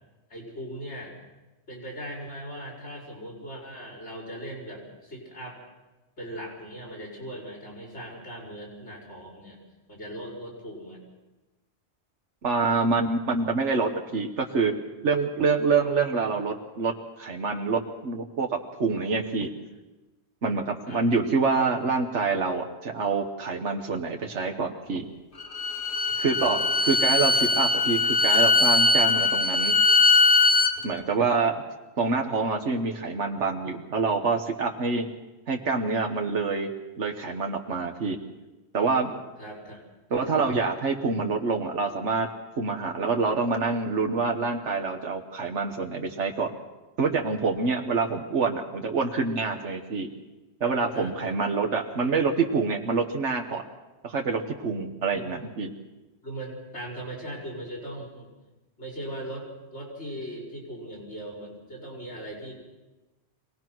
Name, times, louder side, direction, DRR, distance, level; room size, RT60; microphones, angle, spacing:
voice 1, 0.3-1.1 1.7-5.6 6.2-9.6 9.9-11.0 20.9-21.1 26.1-26.8 39.4-39.8 50.9-51.3 55.1-55.5 56.2-58.3 58.8-62.6, right 1 dB, 75° left, -2 dB, 5.6 m, -39 dB
voice 2, 12.4-14.7 15.0-16.9 17.2-19.5 20.4-25.1 26.2-29.8 30.8-31.6 32.0-35.1 35.5-36.7 37.0-38.2 38.7-39.2 40.1-42.3 42.6-46.6 47.0-50.1 50.6-53.6 54.0-55.7, right 4 dB, 90° right, 3 dB, 1.6 m, -26 dB
Bowed string instrument, 25.4-30.7, left 3 dB, 50° left, 1.4 m, -21 dB
24.0 x 18.5 x 6.1 m, 1.1 s
omnidirectional pair, 1.2 m